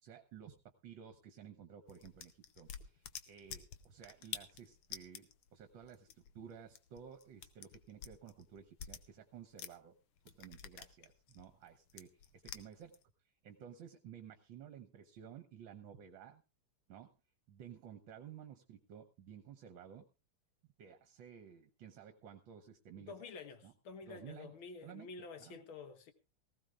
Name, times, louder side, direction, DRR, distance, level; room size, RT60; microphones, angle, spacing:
voice 1, 0.0-10.0 10.3-12.9 13.4-16.4 16.9-17.1 17.5-20.1 20.8-23.1 23.6-23.7 24.1-24.5 24.8-25.1 25.4-25.6, right 8 dB, 65° right, 1.7 m, -54 dB
sound 1, 1.9-9.9 10.2-13.0, left 9 dB, 85° left, 1.9 m, -50 dB
voice 2, 23.0-26.1, left 4 dB, 70° left, 2.1 m, -50 dB
19.0 x 16.0 x 2.5 m
omnidirectional pair, 2.4 m